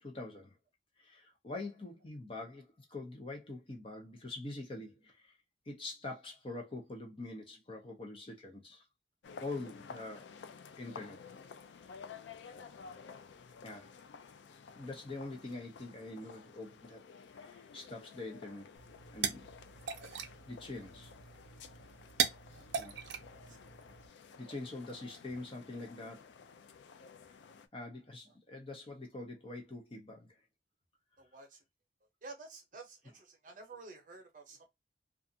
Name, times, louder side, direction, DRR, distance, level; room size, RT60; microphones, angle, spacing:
voice 1, 0.0-0.5 1.0-5.4 5.7-8.9 9.4-10.3 10.8-11.3 13.6-13.9 14.7-17.0 17.4-18.8 19.1-19.4 20.5-21.1 22.8-23.0 24.4-26.3 27.7-30.4, left 2 dB, 30° left, 0.6 m, -44 dB
sound 1, 9.2-27.7, left 6 dB, 75° left, 0.3 m, -53 dB
sound 2, 18.8-24.1, right 7 dB, 75° right, 0.4 m, -39 dB
voice 2, 31.2-31.6 32.2-34.7, right 3 dB, 45° right, 0.7 m, -51 dB
2.4 x 2.4 x 2.6 m
head